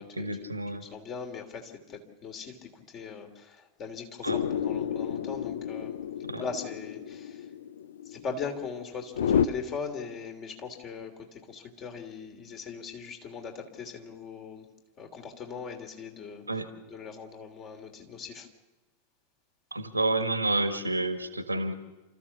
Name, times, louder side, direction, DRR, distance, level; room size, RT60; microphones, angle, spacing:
voice 1, 0.2-0.8 4.2-4.4 6.3-6.4 16.5-16.7 19.7-21.7, right 2 dB, 85° right, 10 dB, 1.6 m, -29 dB
voice 2, 0.8-6.0 6.4-7.5 8.0-14.7 15.0-18.5, left 5 dB, 35° left, 4 dB, 3.1 m, -40 dB
sound 1, 4.3-9.5, left 8 dB, 65° left, 0.6 m, -31 dB
28.5 x 14.5 x 7.1 m, 1.1 s
figure-of-eight pair, 90°, 0 cm